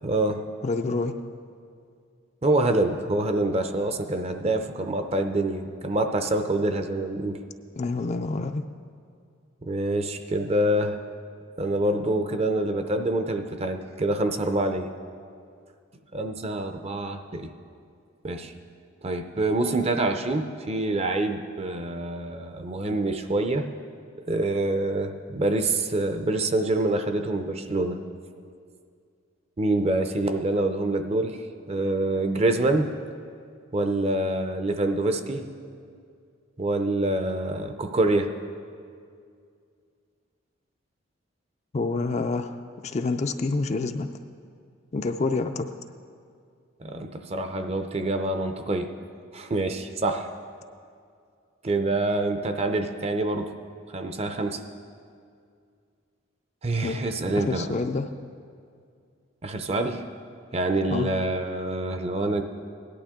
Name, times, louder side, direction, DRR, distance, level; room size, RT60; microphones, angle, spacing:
voice 1, 0.0-0.4 2.4-7.4 9.6-11.0 11.6-14.9 16.1-17.5 18.2-18.5 19.0-23.7 24.2-28.0 29.6-31.4 31.7-32.9 33.7-35.5 36.6-38.3 46.8-48.9 49.3-50.3 51.6-53.5 53.9-54.6 56.6-57.7 59.4-60.0 60.5-62.4, right 2 dB, 30° right, 7 dB, 0.6 m, -26 dB
voice 2, 0.6-1.2 7.8-8.6 41.7-42.6 42.8-44.1 44.9-45.7 56.8-57.0 57.4-58.1 60.9-61.1, left 3 dB, 35° left, 7 dB, 0.4 m, -27 dB
17.5 x 11.5 x 3.7 m, 2.3 s
head